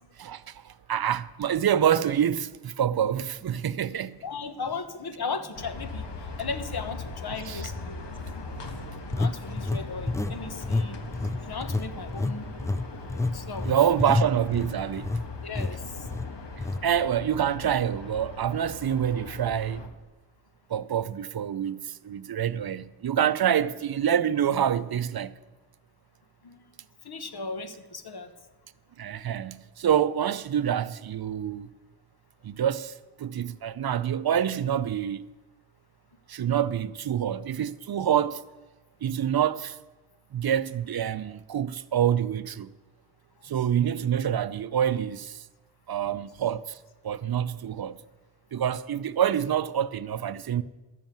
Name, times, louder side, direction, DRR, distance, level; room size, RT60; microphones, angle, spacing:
voice 1, 0.2-4.2 7.5-7.6 13.6-15.1 16.8-19.9 20.7-25.4 29.0-31.7 32.4-35.2 36.3-38.4 39.0-39.8 40.3-42.7 43.4-45.4 45.9-46.8 47.0-48.0 48.5-50.6, right 9 dB, 60° right, 0.6 m, -26 dB
voice 2, 4.2-6.1 6.4-8.1 9.1-11.0 11.4-12.5 13.3-13.7 15.4-16.1 26.4-26.6 27.0-28.3 36.4-36.5, left 4 dB, 60° left, 1.2 m, -36 dB
sound 1, 4.7-4.8 5.4-5.6 9.1-10.4 10.6-10.9 11.1-15.2 15.6-15.7 16.1-16.3 16.6-16.8, left 2 dB, 5° left, 0.4 m, -28 dB
sound 2, 5.5-19.9, left 3 dB, 75° left, 1.6 m, -40 dB
12.0 x 7.2 x 9.1 m
cardioid pair, 55°, 43 cm